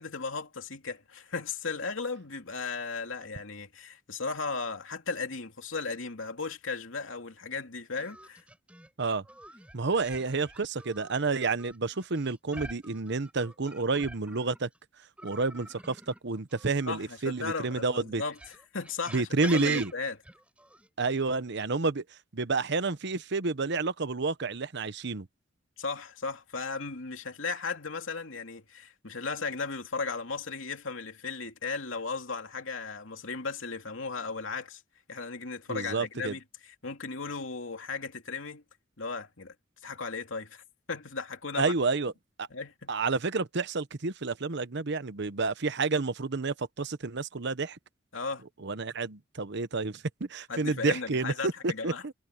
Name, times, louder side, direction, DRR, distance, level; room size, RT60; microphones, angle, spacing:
voice 1, 0.0-8.4 16.9-20.2 25.8-34.8 35.1-38.6 39.0-39.5 39.8-40.6 40.9-41.7 42.5-42.9 48.1-48.4 50.5-52.0, left 4 dB, 80° left, 2.8 m, -36 dB
sound 1, 8.0-14.8 15.2-17.6 18.3-20.9, right 1 dB, 5° right, 7.2 m, -47 dB
voice 2, 9.7-14.7 15.2-18.2 19.1-19.9 21.0-22.0 22.3-25.3 35.7-36.4 41.6-42.1 42.4-42.5 42.9-47.8 48.6-52.1, right 3 dB, 60° right, 1.0 m, -30 dB
head